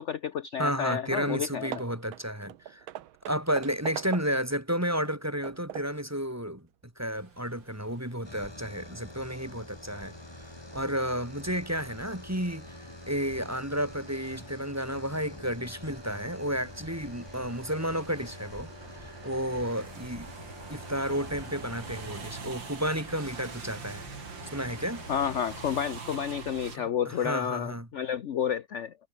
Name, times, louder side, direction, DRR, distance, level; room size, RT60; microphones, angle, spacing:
voice 1, 0.0-1.7 25.1-28.9, left 8 dB, 55° left, 0.8 m, -30 dB
voice 2, 0.6-2.9 3.3-6.7 7.0-10.1 10.7-20.3 20.7-24.0 24.5-25.0 26.7-27.9, equal, 5° right, 3.6 m, -32 dB
Hammer / Wood, 1.1-1.4 1.7-4.6 5.0-6.1, right 13 dB, 85° right, 1.7 m, -41 dB
sound 1, 7.1-26.8, right 5 dB, 65° right, 3.8 m, -47 dB
sound 2, 8.2-26.0, left 1 dB, 10° left, 2.7 m, -46 dB
omnidirectional pair, 2.2 m